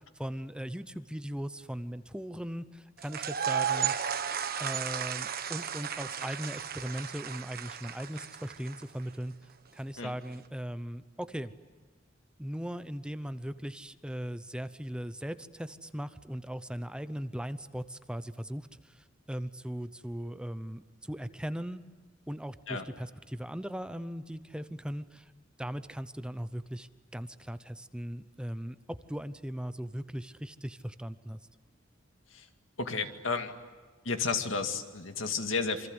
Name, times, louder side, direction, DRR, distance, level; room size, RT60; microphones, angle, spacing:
voice 1, 0.2-3.9 4.6-11.5 12.4-21.8 22.3-25.3 25.6-31.4, equal, 5° right, 12 dB, 0.8 m, -39 dB
sound 1, 3.0-9.0, right 8 dB, 50° right, 1.3 m, -34 dB
voice 2, 32.8-33.6 34.0-35.9, left 4 dB, 90° left, 6 dB, 2.2 m, -32 dB
27.5 x 25.0 x 8.1 m, 1.4 s
head